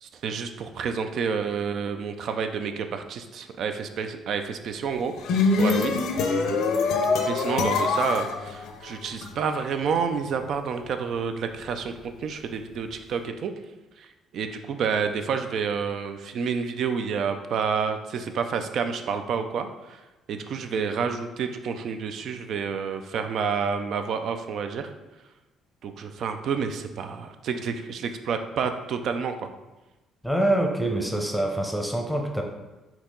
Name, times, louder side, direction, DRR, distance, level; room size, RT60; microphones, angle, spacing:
voice 1, 0.0-5.1 5.6-6.0 7.3-13.5 14.0-20.0 20.3-24.9 25.8-29.5, right 6 dB, 65° right, 8 dB, 0.4 m, -29 dB
sound 1, 5.0-9.3, left 4 dB, 80° left, 0.5 m, -24 dB
voice 2, 30.2-32.4, right 1 dB, ahead, 2 dB, 0.8 m, -25 dB
4.4 x 2.9 x 3.8 m, 1.1 s
cardioid pair, 85°, 0 cm